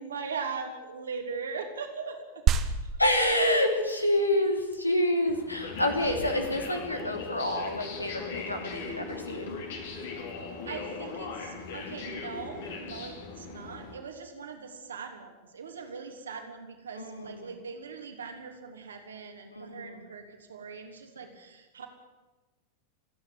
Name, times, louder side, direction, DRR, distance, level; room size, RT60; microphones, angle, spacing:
voice 1, 0.0-2.4 2.8-2.9 10.6-21.9, right 5 dB, 70° right, 4 dB, 3.2 m, -40 dB
sound 1, 2.5-12.4, right 8 dB, 30° right, 1.4 m, -35 dB
voice 2, 3.0-9.6 16.9-17.5 19.5-20.1 21.2-21.3, left 1 dB, 85° left, 4 dB, 3.1 m, -28 dB
sound 2, 5.3-13.9, left 4 dB, 55° left, 4.1 m, -39 dB
28.0 x 10.0 x 9.7 m, 1.2 s
figure-of-eight pair, 90°, 0 cm